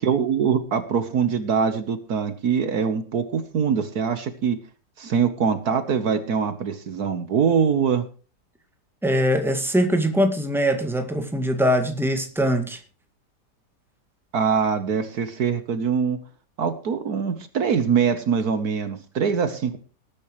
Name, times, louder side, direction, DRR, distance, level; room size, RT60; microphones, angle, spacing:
voice 1, 0.0-4.6 5.0-8.1 14.3-16.2 16.6-19.8, right 6 dB, 65° right, 11 dB, 1.6 m, -23 dB
voice 2, 9.0-12.8, equal, ahead, 5 dB, 1.9 m, -22 dB
19.5 x 9.9 x 3.2 m, 0.36 s
omnidirectional pair, 1.8 m